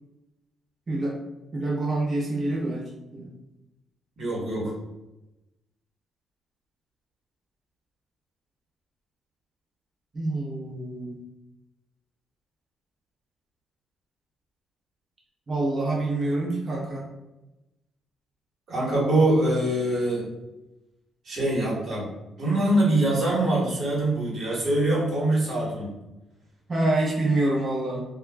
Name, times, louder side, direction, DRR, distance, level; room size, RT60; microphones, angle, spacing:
voice 1, 0.9-1.2 1.5-2.8 3.1-3.3 10.1-11.2 15.5-17.1 26.7-28.0, right 2 dB, 35° right, -4 dB, 0.8 m, -26 dB
voice 2, 4.2-4.7 18.7-20.2 21.2-22.1 22.4-25.9, right 1 dB, 60° right, -5 dB, 1.2 m, -23 dB
2.2 x 2.2 x 3.3 m, 0.98 s
cardioid pair, 90°, 0 cm